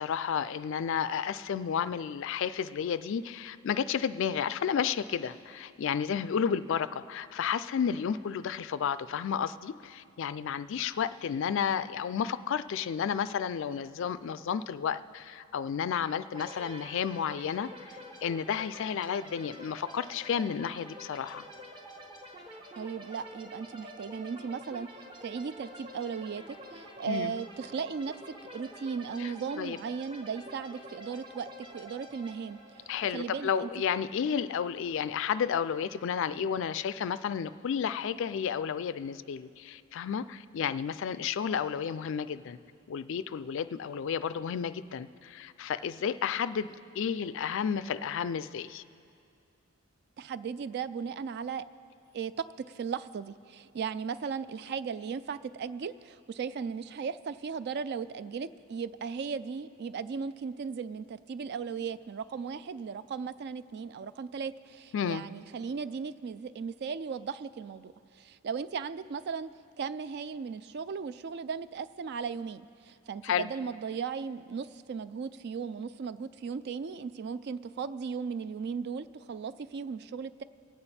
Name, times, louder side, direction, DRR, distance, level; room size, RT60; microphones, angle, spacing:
voice 1, 0.0-21.4 27.1-27.3 29.2-29.3 29.6-29.8 32.9-42.6 42.9-48.8 64.9-65.2 73.2-73.5, left 7 dB, 60° left, 15 dB, 0.3 m, -32 dB
sound 1, 16.3-33.9, equal, 25° right, 0.9 m, -48 dB
voice 2, 22.8-24.9 25.2-28.2 28.5-32.6 33.1-33.7 50.2-51.6 52.1-69.5 69.8-80.4, right 6 dB, 50° right, 15 dB, 0.3 m, -36 dB
22.5 x 8.8 x 4.2 m, 2.4 s
head